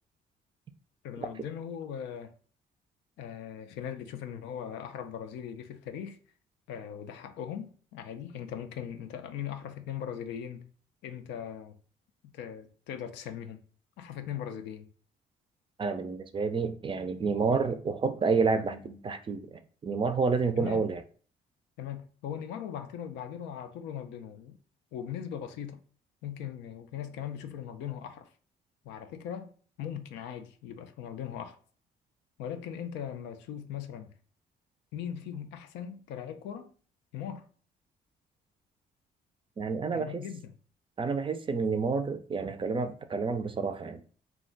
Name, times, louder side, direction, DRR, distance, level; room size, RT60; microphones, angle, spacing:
voice 1, 1.0-2.3 3.2-6.2 6.7-10.7 11.0-11.8 12.3-13.6 14.0-14.9 20.6-20.9 21.8-24.6 24.9-25.8 26.2-28.3 28.8-29.5 29.8-31.6 32.4-34.1 34.9-36.7 37.1-37.5 39.9-40.5, left 9 dB, 90° left, 0.4 m, -39 dB
voice 2, 15.8-21.0 39.6-40.2 41.0-44.0, right 4 dB, 30° right, 0.4 m, -29 dB
2.3 x 2.2 x 3.8 m
cardioid pair, 75°, 18 cm